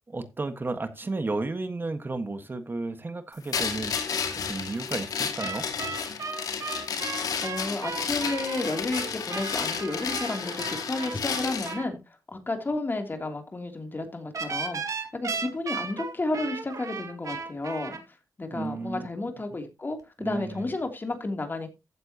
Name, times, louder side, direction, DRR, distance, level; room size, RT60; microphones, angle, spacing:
voice 1, 0.1-5.6 18.5-19.1 20.2-20.7, right 3 dB, 35° right, 1.5 m, -33 dB
sound 1, 3.5-11.8, left 6 dB, 80° left, 2.2 m, -32 dB
sound 2, 5.4-11.9 14.3-18.0, right 5 dB, 60° right, 2.4 m, -35 dB
voice 2, 7.4-12.0 12.3-18.0 18.4-21.7, left 2 dB, 30° left, 3.0 m, -32 dB
15.0 x 7.8 x 2.9 m
cardioid pair, 65°, 6 cm